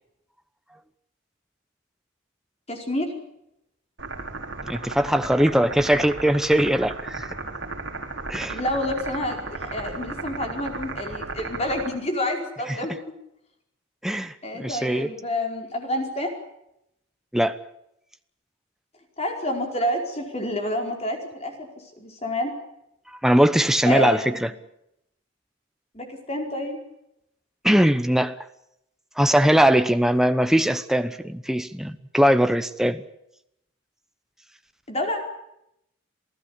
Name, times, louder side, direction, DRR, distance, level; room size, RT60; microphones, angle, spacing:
voice 1, 2.7-3.1 8.5-13.1 14.4-16.3 19.2-22.5 23.9-24.5 25.9-26.8 34.9-35.2, left 1 dB, 30° left, 4.8 m, -28 dB
sound 1, 4.0-11.9, right 3 dB, 60° right, 4.9 m, -34 dB
voice 2, 4.7-7.3 8.3-8.6 12.7-12.8 14.0-15.1 17.3-17.6 23.2-24.5 27.6-28.4 29.2-33.0, equal, ahead, 0.9 m, -20 dB
28.0 x 16.5 x 8.6 m
head